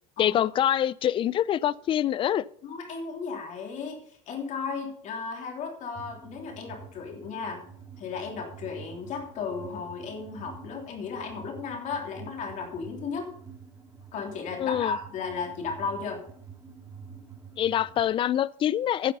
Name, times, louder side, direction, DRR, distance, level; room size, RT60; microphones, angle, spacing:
voice 1, 0.2-2.4 14.6-14.9 17.6-19.1, left 11 dB, 30° left, 0.4 m, -25 dB
voice 2, 2.6-7.7 8.0-13.3 14.1-16.2, left 5 dB, 50° left, 3.3 m, -35 dB
sound 1, 6.0-18.0, right 6 dB, 20° right, 2.0 m, -47 dB
11.5 x 7.6 x 5.5 m
supercardioid pair, 125°, 17 cm